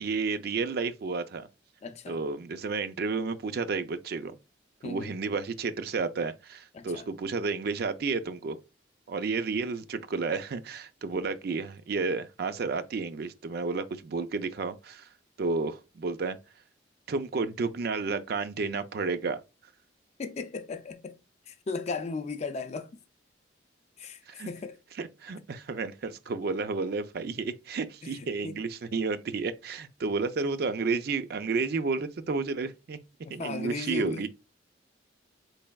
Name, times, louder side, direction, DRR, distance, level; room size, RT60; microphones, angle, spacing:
voice 1, 0.0-1.5 2.1-4.4 4.8-8.6 9.1-15.1 15.4-16.4 17.1-19.4 24.3-24.5 25.0-33.0 33.3-34.3, right 4 dB, 55° right, 0.4 m, -31 dB
voice 2, 1.8-2.2 4.8-5.1 6.7-7.1 20.2-21.2 21.5-22.9 24.0-24.7 28.0-28.5 33.2-34.3, left 4 dB, 35° left, 0.4 m, -36 dB
4.2 x 3.3 x 2.2 m
head